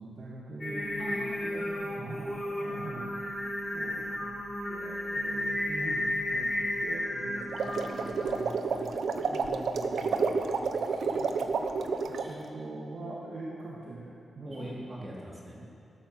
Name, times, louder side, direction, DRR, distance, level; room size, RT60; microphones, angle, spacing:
voice 1, 0.0-1.7 2.0-3.1 3.7-9.0 9.8-10.2 10.6-11.5 12.1-14.9 15.6-15.7, right 2 dB, 55° right, -4 dB, 2.0 m, -43 dB
Singing, 0.6-8.2, left 1 dB, 30° left, 3.9 m, -33 dB
voice 2, 1.0-2.1 2.4-3.0 9.2-10.4 14.4-15.6, equal, 25° right, -5 dB, 3.8 m, -43 dB
sound 1, 7.4-12.3, right 4 dB, 80° right, 1.0 m, -30 dB
17.5 x 12.5 x 6.6 m, 2.6 s
wide cardioid pair, 135°, 0 cm